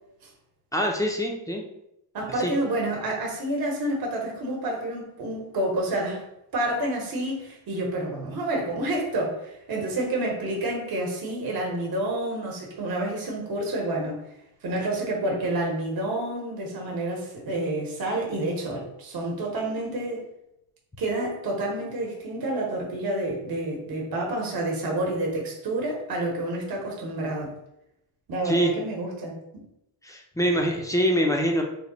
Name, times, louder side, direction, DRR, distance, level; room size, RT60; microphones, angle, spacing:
voice 1, 0.7-1.6 2.4-2.5 28.5-28.7 30.0-31.6, equal, 10° left, 1 dB, 0.4 m, -24 dB
voice 2, 2.1-6.2 6.5-14.2 14.6-20.3 21.0-27.5 28.3-29.6, right 1 dB, 55° right, -1 dB, 1.0 m, -29 dB
3.3 x 2.2 x 3.8 m, 0.82 s
cardioid pair, 110°, 44 cm